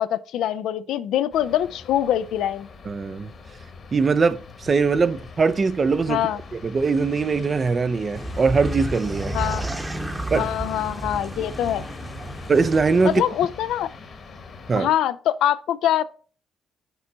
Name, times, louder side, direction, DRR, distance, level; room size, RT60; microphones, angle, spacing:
voice 1, 0.0-2.7 6.1-6.4 9.3-9.7 10.3-11.8 13.0-13.9 14.8-16.0, left 11 dB, 75° left, 0.3 m, -24 dB
sound 1, 1.3-14.8, left 4 dB, 55° left, 1.2 m, -42 dB
voice 2, 2.8-3.3 3.9-6.2 6.5-9.3 10.3-10.5 12.5-13.2 14.7-14.9, right 4 dB, 45° right, 0.5 m, -21 dB
sound 2, 8.2-13.2, right 1 dB, 15° right, 1.0 m, -32 dB
6.8 x 4.3 x 3.9 m
hypercardioid pair, 50°, 0 cm